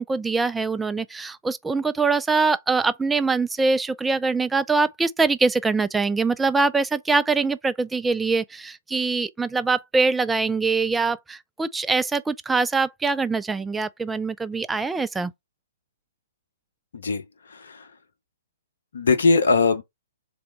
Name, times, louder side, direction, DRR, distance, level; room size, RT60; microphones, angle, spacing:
voice 1, 0.0-15.3, right 4 dB, 5° right, 0.3 m, -23 dB
voice 2, 16.9-17.9 18.9-19.8, left 4 dB, 55° left, 0.9 m, -21 dB
3.8 x 3.3 x 4.2 m
figure-of-eight pair, 120°, 0 cm